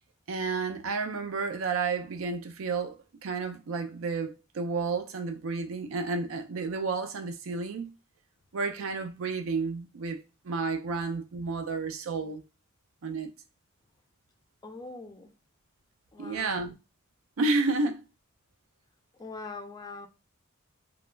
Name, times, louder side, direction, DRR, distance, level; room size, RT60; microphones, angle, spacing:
voice 1, 0.3-7.9 8.5-12.4 13.0-13.3 16.2-16.7 17.4-18.0, right 4 dB, 75° right, 0.5 m, -31 dB
voice 2, 14.6-15.3 16.1-16.7 19.2-20.1, left 3 dB, 20° left, 0.4 m, -42 dB
2.3 x 2.0 x 3.2 m
head